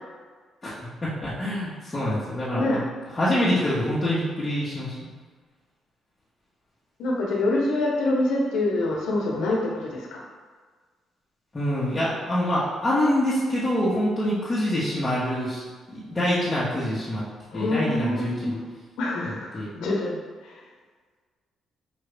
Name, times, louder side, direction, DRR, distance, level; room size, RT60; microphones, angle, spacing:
voice 1, 1.0-2.8 3.1-5.1 11.5-15.6 15.9-17.2 17.5-18.6 19.2-19.7, left 1 dB, 25° left, -10 dB, 1.2 m, -25 dB
voice 2, 7.0-10.2 17.5-18.7 19.0-20.2 20.4-20.5, left 2 dB, 85° left, -2 dB, 0.9 m, -26 dB
5.1 x 2.6 x 3.4 m, 1.5 s
cardioid pair, 90°, 0 cm